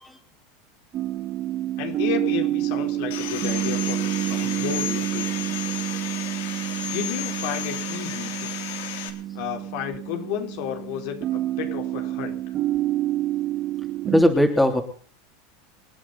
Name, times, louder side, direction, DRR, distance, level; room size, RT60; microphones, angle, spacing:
sound 1, 0.9-14.2, right 13 dB, 35° right, 1.9 m, -28 dB
voice 1, 1.8-5.6 6.9-8.5 9.3-12.4, left 10 dB, 65° left, 4 dB, 4.2 m, -32 dB
Sawing, 3.1-9.1, left 10 dB, 80° left, 3.7 m, -33 dB
voice 2, 14.1-14.8, left 1 dB, 5° left, 4 dB, 3.3 m, -18 dB
27.5 x 10.5 x 4.2 m, 0.43 s
supercardioid pair, 135°, 0 cm